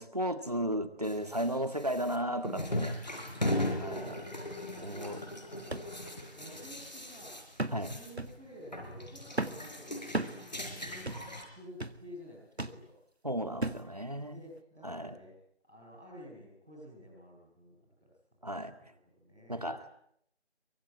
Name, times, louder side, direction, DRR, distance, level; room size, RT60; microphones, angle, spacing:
voice 1, 0.0-3.0 3.8-4.3 4.8-5.2 7.7-8.0 13.2-14.3 14.8-15.1 18.4-18.7 19.5-19.9, equal, 35° right, 10 dB, 1.9 m, -34 dB
sound 1, 1.0-8.3 8.6-11.4, left 1 dB, 40° left, 4.6 m, -38 dB
voice 2, 3.3-5.9 6.3-7.4 7.7-10.5 10.8-12.9 14.2-15.3 15.6-18.1 18.7-19.7, equal, ahead, -24 dB, 5.5 m, -52 dB
sound 2, 5.7-5.9 6.4-6.5 7.6-7.9 8.2-8.4 9.4-9.6 10.1-10.4 11.1-11.3 11.8-12.0 12.6-12.8 13.6-13.9 14.6-14.7, right 2 dB, 70° right, 2.0 m, -35 dB
24.0 x 23.5 x 9.7 m, 0.69 s
figure-of-eight pair, 180°, 34 cm